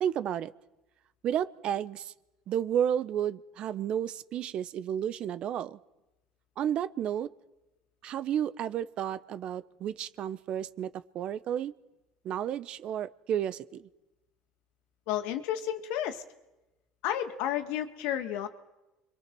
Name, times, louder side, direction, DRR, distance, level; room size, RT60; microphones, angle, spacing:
voice 1, 0.0-0.5 1.2-2.1 2.5-5.8 6.6-7.3 8.0-11.7 12.2-13.9, right 9 dB, 55° right, 16 dB, 1.0 m, -32 dB
voice 2, 15.1-16.2 17.0-18.5, left 11 dB, 75° left, 7 dB, 2.1 m, -31 dB
29.5 x 24.0 x 6.3 m, 1.0 s
supercardioid pair, 90°, 2 cm